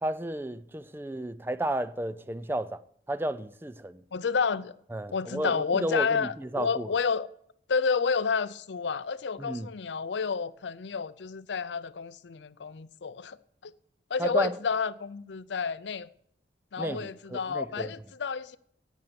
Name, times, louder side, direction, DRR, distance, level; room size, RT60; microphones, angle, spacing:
voice 1, 0.0-2.8 3.1-4.0 4.9-6.9 9.4-9.7 14.2-14.6 16.8-17.9, right 1 dB, 10° right, 0.4 m, -32 dB
voice 2, 4.1-4.7 5.1-7.3 7.7-13.4 13.6-13.7 14.1-16.1 16.7-18.6, left 5 dB, 80° left, 0.5 m, -30 dB
11.0 x 9.2 x 6.8 m
head